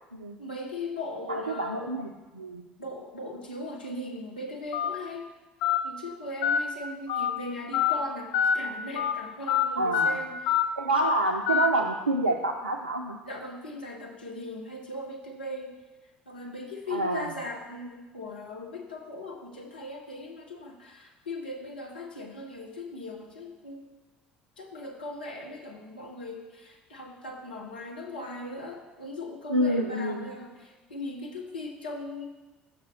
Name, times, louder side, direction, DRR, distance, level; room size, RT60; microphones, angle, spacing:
voice 1, 0.4-1.9 2.8-5.3 5.8-10.6 13.2-15.8 16.3-23.9 24.6-32.3, left 2 dB, 80° left, 1 dB, 0.9 m, -39 dB
voice 2, 1.3-2.7 9.8-10.2 10.8-13.2 16.9-17.3 29.5-30.3, right 2 dB, 85° right, 2 dB, 0.4 m, -28 dB
Telephone, 4.7-4.9 5.6-5.8 6.4-6.6 7.1-7.3 7.7-7.9 8.3-8.6 9.0-9.1 9.5-9.6 9.9-10.1 10.5-10.6 10.9-11.1 11.5-11.7, left 8 dB, 60° left, 0.4 m, -24 dB
6.2 x 5.9 x 4.3 m, 1.2 s
figure-of-eight pair, 60°, 5 cm